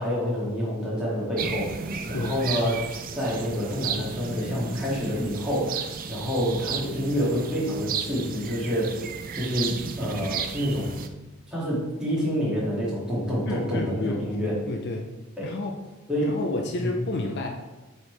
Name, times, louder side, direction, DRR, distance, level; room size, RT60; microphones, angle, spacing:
voice 1, 0.0-2.8 3.2-9.0 9.3-10.9 11.5-14.6 15.4-15.5 16.1-16.3 16.8-16.9, equal, 5° right, -8 dB, 2.3 m, -27 dB
sound 1, 1.4-11.1, right 6 dB, 40° right, 0.4 m, -34 dB
voice 2, 2.1-2.5 13.5-14.2 14.7-15.1 15.4-15.8 16.2-17.5, left 2 dB, 50° left, 3 dB, 0.5 m, -30 dB
8.5 x 4.4 x 3.3 m, 1.1 s
head